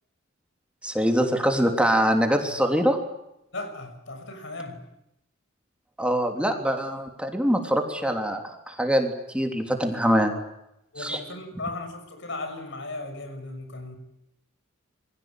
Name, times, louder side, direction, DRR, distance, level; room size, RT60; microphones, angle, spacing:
voice 1, 0.8-3.0 6.0-10.3 11.0-11.2, equal, 5° right, 3.3 m, -24 dB
voice 2, 3.5-4.8 10.9-14.0, left 2 dB, 65° left, 6.4 m, -36 dB
28.0 x 23.0 x 9.2 m
head